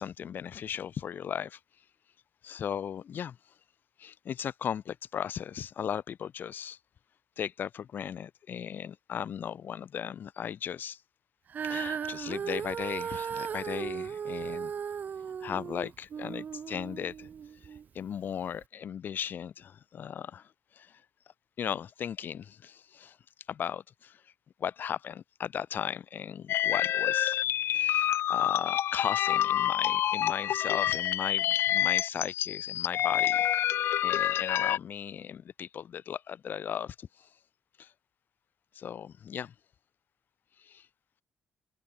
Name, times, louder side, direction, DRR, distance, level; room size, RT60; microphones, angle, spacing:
voice 1, 0.0-1.6 2.4-3.5 4.0-6.8 7.4-11.0 11.6-14.7 15.2-17.3 17.6-21.0 21.6-23.2 23.5-24.3 24.6-27.4 27.7-33.5 34.0-37.4 37.8-37.9 38.7-39.5 40.6-40.9, left 8 dB, 55° left, 1.5 m, -37 dB
Female singing, 11.5-17.8 18.5-18.6, right 7 dB, 45° right, 1.9 m, -36 dB
sound 1, 26.5-34.8, left 12 dB, 75° left, 0.8 m, -27 dB
cardioid pair, 140°, 4 cm